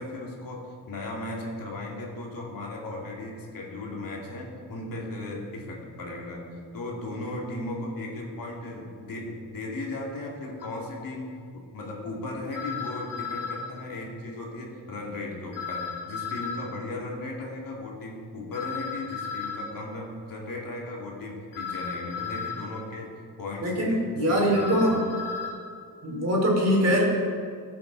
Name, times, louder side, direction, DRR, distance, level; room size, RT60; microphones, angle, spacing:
voice 1, 0.0-6.5 6.7-23.1 23.4-24.0 24.2-25.0, left 2 dB, 55° left, -2 dB, 2.5 m, -36 dB
sound 1, 10.6-10.7 12.5-13.7 15.5-16.7 18.5-19.7 21.5-22.7 24.5-25.5, left 5 dB, 85° left, 3.1 m, -34 dB
voice 2, 23.6-25.0 26.0-27.0, equal, 40° right, -2 dB, 3.5 m, -23 dB
16.0 x 8.4 x 3.9 m, 2.2 s
cardioid pair, 95°, 39 cm